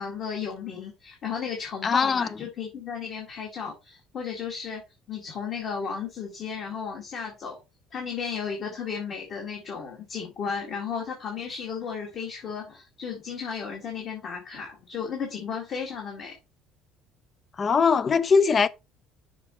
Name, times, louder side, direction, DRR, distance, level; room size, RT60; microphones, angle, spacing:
voice 1, 0.0-4.8 5.1-7.6 7.9-16.4, left 6 dB, 40° left, 2.0 m, -34 dB
voice 2, 1.8-2.3 17.6-18.7, left 5 dB, 25° left, 0.5 m, -21 dB
6.7 x 4.9 x 4.3 m
cardioid pair, 150°, 0 cm